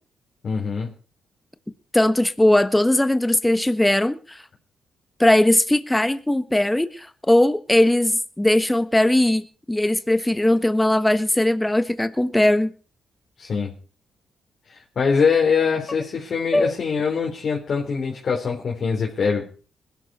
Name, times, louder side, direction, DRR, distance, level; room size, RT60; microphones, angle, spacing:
voice 1, 0.4-0.9 13.4-13.7 14.7-19.5, left 5 dB, 55° left, -2 dB, 4.1 m, -23 dB
voice 2, 1.9-4.4 5.2-9.4 9.7-12.7 16.5-16.7, left 1 dB, 10° left, 11 dB, 1.3 m, -19 dB
21.0 x 12.0 x 4.4 m, 0.38 s
supercardioid pair, 55°, 0 cm